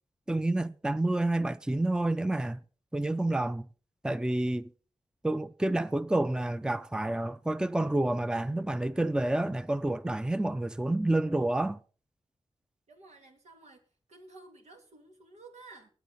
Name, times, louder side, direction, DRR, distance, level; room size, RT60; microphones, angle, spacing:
voice 1, 0.3-2.6 2.9-3.7 4.0-4.7 5.2-11.8, right 1 dB, 5° right, 0.6 m, -29 dB
voice 2, 12.9-13.8 14.1-15.9, right 3 dB, 85° right, 2.6 m, -52 dB
20.0 x 8.2 x 4.2 m
cardioid pair, 55°, 11 cm